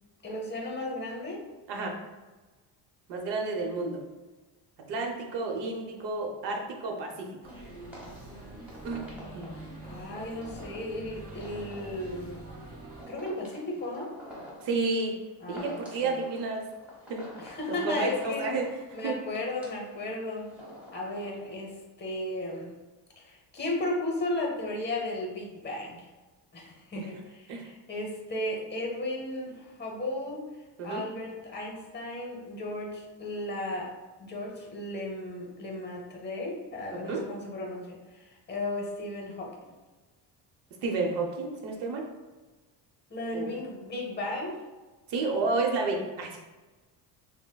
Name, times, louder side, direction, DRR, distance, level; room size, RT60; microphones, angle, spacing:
voice 1, 0.2-1.4 9.1-9.5 9.8-12.4 13.1-14.1 15.4-16.2 17.4-18.5 18.9-20.5 20.9-22.7 23.2-26.1 26.5-30.4 30.8-33.9 34.2-38.0 38.5-39.7 43.1-44.6, left 1 dB, 25° left, 0 dB, 0.8 m, -35 dB
voice 2, 1.7-2.0 3.1-4.0 4.9-7.3 8.8-9.0 9.3-9.5 14.6-15.2 15.5-16.7 17.1-17.3 17.8-18.7 19.0-19.2 27.5-27.7 30.8-31.0 36.9-37.2 40.8-42.1 43.3-43.5 45.1-46.5, right 3 dB, 80° right, 1 dB, 0.8 m, -31 dB
sound 1, 7.4-13.0, right 2 dB, 20° right, 1.3 m, -45 dB
sound 2, 7.5-21.3, left 1 dB, 5° right, 1.2 m, -49 dB
6.1 x 2.1 x 2.3 m, 1.2 s
cardioid pair, 130°, 41 cm